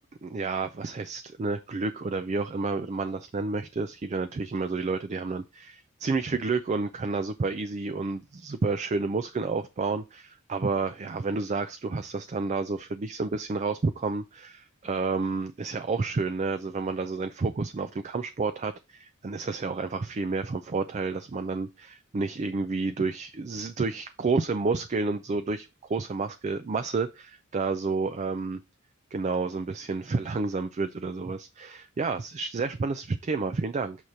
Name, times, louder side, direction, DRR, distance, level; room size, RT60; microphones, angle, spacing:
voice 1, 0.2-28.6 29.1-34.0, right 4 dB, 35° right, 0.4 m, -30 dB
6.4 x 3.0 x 5.3 m
head